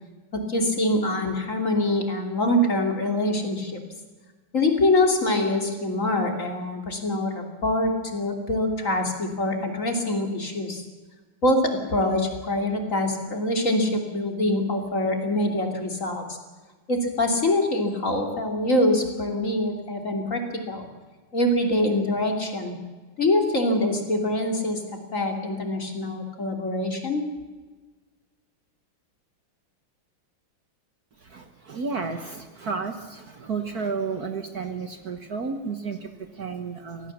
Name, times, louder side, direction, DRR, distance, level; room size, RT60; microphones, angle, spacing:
voice 1, 0.3-3.8 4.5-10.8 11.4-16.4 16.9-20.9 21.3-22.7 23.2-24.8 25.1-27.3, left 1 dB, 35° left, 3 dB, 3.0 m, -24 dB
voice 2, 31.2-37.1, right 5 dB, 50° right, 7 dB, 1.6 m, -32 dB
25.0 x 17.0 x 7.3 m, 1.3 s
omnidirectional pair, 2.3 m